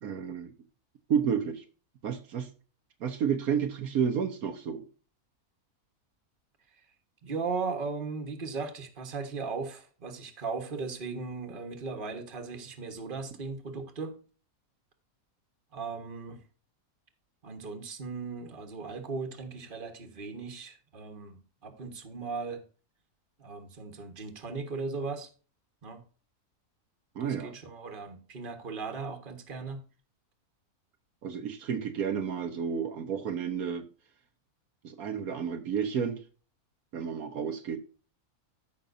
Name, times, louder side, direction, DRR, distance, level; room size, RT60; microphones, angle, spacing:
voice 1, 0.0-0.5 1.1-1.6 2.0-2.5 3.0-4.8 27.1-27.5 31.2-33.9 34.8-36.2 36.9-37.8, right 7 dB, 75° right, 1.4 m, -31 dB
voice 2, 7.2-14.2 15.7-16.4 17.4-22.6 23.4-25.3 25.8-26.0 27.2-29.8, right 4 dB, 35° right, 1.5 m, -37 dB
14.0 x 5.8 x 2.6 m
omnidirectional pair, 1.6 m